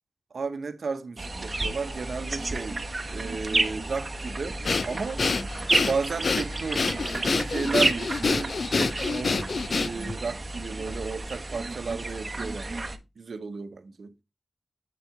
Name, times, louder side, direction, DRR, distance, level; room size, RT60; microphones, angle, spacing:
voice 1, 0.3-2.8 3.1-4.6 4.8-5.2 5.8-6.9 7.2-14.1, right 4 dB, 65° right, 0.9 m, -33 dB
sound 1, 1.2-13.0, right 2 dB, 35° right, 0.9 m, -31 dB
Breathing, 4.6-10.2, left 4 dB, 55° left, 0.5 m, -27 dB
8.3 x 4.5 x 3.8 m
wide cardioid pair, 120°, 0 cm